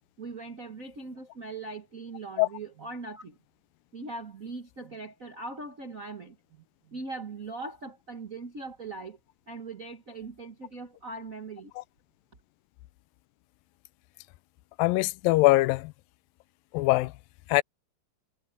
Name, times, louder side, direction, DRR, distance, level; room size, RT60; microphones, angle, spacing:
voice 1, 0.2-3.4 3.9-9.2 9.5-11.7, right 3 dB, 45° right, 1.0 m, -40 dB
voice 2, 14.8-15.9 16.7-17.1 17.5-17.6, left 20 dB, 90° left, 2.3 m, -22 dB
omnidirectional pair, 3.9 m